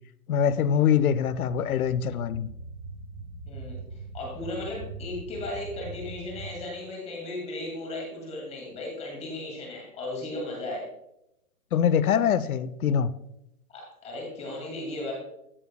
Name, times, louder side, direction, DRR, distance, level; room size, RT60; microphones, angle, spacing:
voice 1, 0.3-2.5 11.7-13.1, left 8 dB, 70° left, 0.6 m, -24 dB
sound 1, 1.2-6.6, right 3 dB, 30° right, 2.9 m, -42 dB
voice 2, 4.1-10.9 13.7-15.1, left 2 dB, 15° left, 2.1 m, -36 dB
14.5 x 6.9 x 2.2 m
hypercardioid pair, 150°, 45 cm